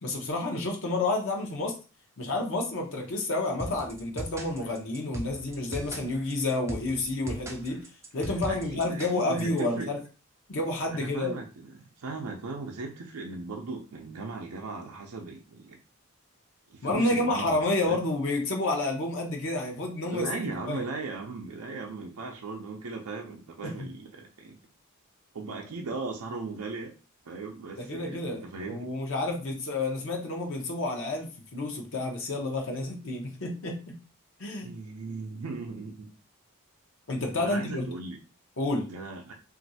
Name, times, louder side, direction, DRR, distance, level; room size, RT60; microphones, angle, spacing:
voice 1, 0.0-1.7 2.2-7.8 8.1-10.0 10.5-11.4 16.8-20.9 23.6-23.9 27.8-34.0 34.4-34.7 37.1-37.8 38.6-38.9, left 2 dB, 60° left, 1 dB, 0.6 m, -30 dB
sound 1, 3.6-9.6, equal, 15° right, 0.3 m, -39 dB
voice 2, 8.5-9.9 10.9-15.8 16.7-18.0 20.0-24.6 25.3-26.9 27.2-28.9 34.6-36.1 37.3-38.2 38.9-39.3, right 3 dB, 85° right, 1 dB, 0.5 m, -38 dB
3.0 x 2.5 x 2.6 m, 0.33 s
head